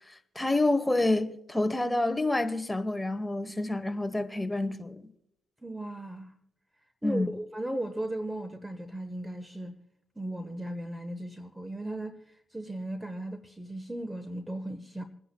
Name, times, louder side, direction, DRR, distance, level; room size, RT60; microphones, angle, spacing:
voice 1, 0.3-5.0 7.0-7.3, left 2 dB, 10° left, 1.1 m, -28 dB
voice 2, 5.6-6.3 7.0-9.8 10.2-15.0, right 1 dB, 10° right, 1.1 m, -36 dB
27.5 x 10.0 x 2.2 m
supercardioid pair, 65°, 0 cm